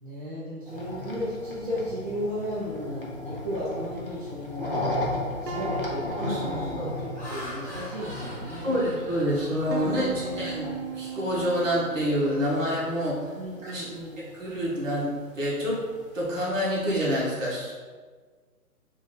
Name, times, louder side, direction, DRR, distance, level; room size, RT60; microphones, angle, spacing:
voice 1, 0.0-8.9 9.8-10.6 13.3-14.2, equal, 35° right, -9 dB, 0.6 m, -35 dB
sound 1, 0.7-16.4, left 1 dB, 40° left, 0.4 m, -36 dB
sound 2, 2.7-4.5 5.0-5.1 5.5-8.7 9.3-12.5, right 5 dB, 80° right, 0.7 m, -40 dB
voice 2, 6.2-6.9 8.6-13.3 13.6-13.8 14.3-15.8 16.1-17.7, equal, 50° right, -5 dB, 1.4 m, -27 dB
Laughter, 6.8-10.6 11.1-11.3 11.7-13.6, equal, 15° left, 0.8 m, -43 dB
3.5 x 2.6 x 3.8 m, 1.5 s
hypercardioid pair, 160°, 47 cm